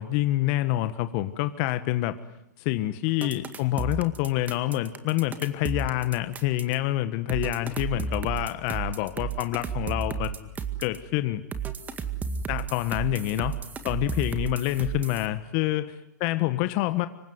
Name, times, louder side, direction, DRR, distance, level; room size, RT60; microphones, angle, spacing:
voice 1, 0.0-2.1 2.6-10.5 10.8-11.4 12.5-13.6 13.8-17.1, left 15 dB, 40° left, 11 dB, 1.3 m, -27 dB
sound 1, 3.2-6.7 7.3-11.0 11.5-15.3, right 6 dB, 15° right, 2.0 m, -33 dB
26.0 x 23.5 x 9.6 m, 0.85 s
hypercardioid pair, 125°, 10 cm